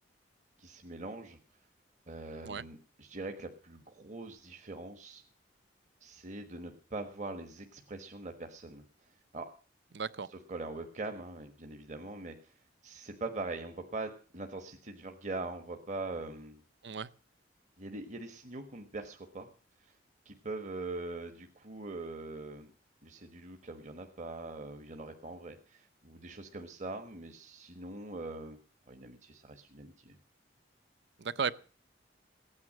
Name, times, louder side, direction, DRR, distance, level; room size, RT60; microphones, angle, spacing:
voice 1, 0.6-1.4 2.1-5.2 6.0-8.8 9.3-9.5 10.3-12.5 12.8-16.6 17.8-19.5 19.8-19.9 20.2-22.7 23.0-28.6 28.9-30.2, right 2 dB, 40° right, 4 dB, 1.3 m, -42 dB
voice 2, 9.9-10.3 16.8-17.1 31.2-31.5, right 5 dB, 65° right, 17 dB, 0.7 m, -34 dB
16.0 x 9.6 x 7.4 m, 0.41 s
head